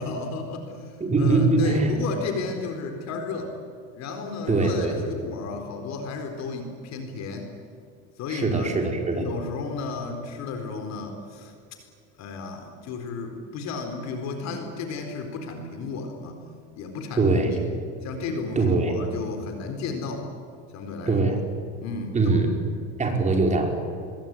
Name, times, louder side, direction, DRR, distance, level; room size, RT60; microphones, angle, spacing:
voice 1, 0.0-3.5 3.9-7.5 8.2-8.8 9.1-11.5 12.2-16.4 16.8-17.6 18.0-20.3 20.7-21.2 21.8-22.4, left 4 dB, 50° left, 5 dB, 4.2 m, -33 dB
voice 2, 1.0-2.0 4.5-5.0 8.3-9.3 17.2-17.7 18.5-19.0 21.1-21.4 22.1-22.6 23.0-23.7, right 3 dB, 20° right, 2 dB, 5.1 m, -22 dB
25.5 x 22.0 x 9.7 m, 2.3 s
cardioid pair, 135°, 35 cm